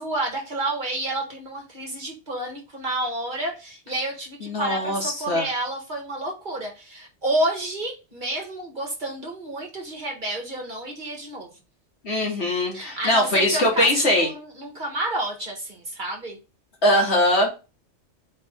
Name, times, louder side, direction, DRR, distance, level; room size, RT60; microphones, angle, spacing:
voice 1, 0.0-11.5 12.7-16.4, right 1 dB, 45° right, 0 dB, 1.5 m, -30 dB
voice 2, 4.4-5.4 12.0-14.3 16.8-17.5, left 1 dB, 65° left, -1 dB, 2.0 m, -21 dB
4.1 x 3.5 x 3.6 m, 0.29 s
omnidirectional pair, 1.2 m